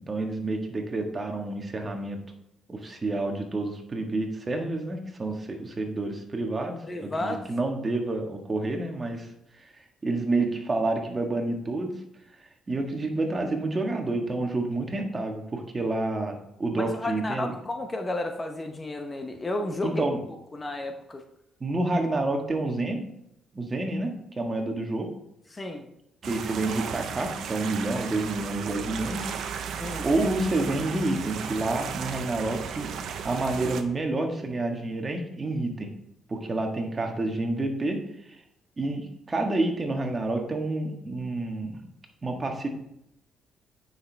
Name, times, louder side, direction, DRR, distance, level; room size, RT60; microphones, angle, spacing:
voice 1, 0.0-2.2 2.7-9.3 10.0-11.9 12.7-17.5 19.8-20.2 21.6-23.0 23.5-25.1 26.2-29.3 30.0-32.9 33.2-35.9 36.3-38.4 38.8-41.8 42.2-42.7, right 2 dB, 30° right, 3 dB, 1.6 m, -29 dB
voice 2, 6.9-7.4 16.7-21.2 25.5-25.9 29.8-30.1, left 2 dB, 25° left, 5 dB, 0.9 m, -32 dB
sound 1, 26.2-33.8, right 7 dB, 75° right, 0.7 m, -35 dB
9.1 x 6.1 x 3.5 m, 0.77 s
cardioid pair, 90°, 0 cm